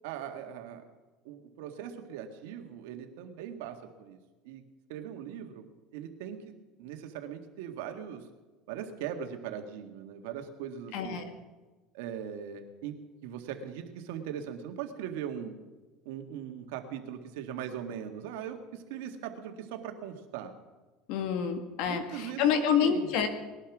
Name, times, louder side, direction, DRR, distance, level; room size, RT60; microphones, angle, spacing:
voice 1, 0.0-0.8 1.2-4.2 4.4-4.6 4.9-5.7 5.9-8.3 8.7-11.2 11.9-13.0 13.2-15.5 16.1-20.5 21.8-23.1, right 9 dB, 85° right, 5 dB, 1.9 m, -40 dB
voice 2, 10.9-11.3 21.1-23.3, left 7 dB, 70° left, 8 dB, 2.0 m, -28 dB
20.0 x 11.5 x 6.2 m, 1.2 s
cardioid pair, 130°, 0 cm